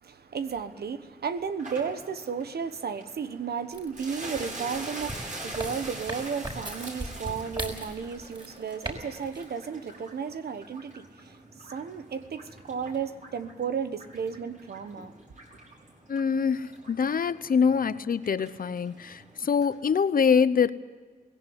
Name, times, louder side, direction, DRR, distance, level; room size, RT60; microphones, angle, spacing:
voice 1, 0.0-15.1, right 6 dB, 80° right, 1.2 m, -34 dB
sound 1, 1.6-19.8, right 2 dB, 55° right, 6.2 m, -45 dB
sound 2, 3.7-9.0 9.2-9.4, right 1 dB, 30° right, 5.5 m, -38 dB
voice 2, 16.1-20.7, left 6 dB, 60° left, 0.8 m, -24 dB
18.5 x 16.5 x 9.6 m
cardioid pair, 65°, 16 cm